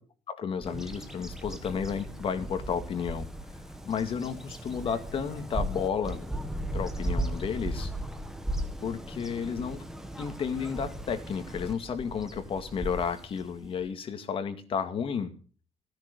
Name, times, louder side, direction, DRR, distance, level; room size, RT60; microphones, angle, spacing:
voice 1, 0.3-3.3 3.9-6.2 6.7-7.9 8.8-9.8 10.2-15.3, left 6 dB, 50° left, 8 dB, 2.3 m, -32 dB
Bird vocalization bird call bird song, 0.6-13.9, right 1 dB, 5° right, 1.8 m, -37 dB
16.5 x 10.5 x 6.9 m, 0.40 s
cardioid pair, 135°, 12 cm